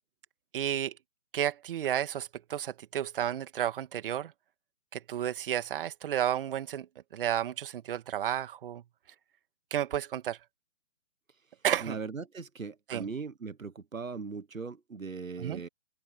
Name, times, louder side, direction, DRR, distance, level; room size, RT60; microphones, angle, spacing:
voice 1, 0.5-1.0 1.3-4.3 4.9-8.8 9.7-10.4 11.6-12.0 12.9-13.1 15.4-15.6, right 10 dB, 45° right, 2.4 m, -32 dB
voice 2, 11.8-15.7, right 5 dB, 85° right, 1.4 m, -39 dB
open air
figure-of-eight pair, 140°, 39 cm